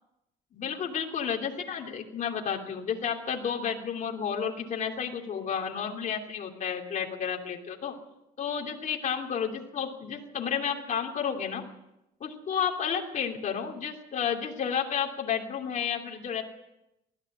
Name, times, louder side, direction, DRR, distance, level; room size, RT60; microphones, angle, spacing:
voice 1, 0.5-7.9 8.4-11.6 12.2-16.4, left 7 dB, 45° left, 1 dB, 3.0 m, -31 dB
20.0 x 14.5 x 9.7 m, 0.89 s
cardioid pair, 110°, 17 cm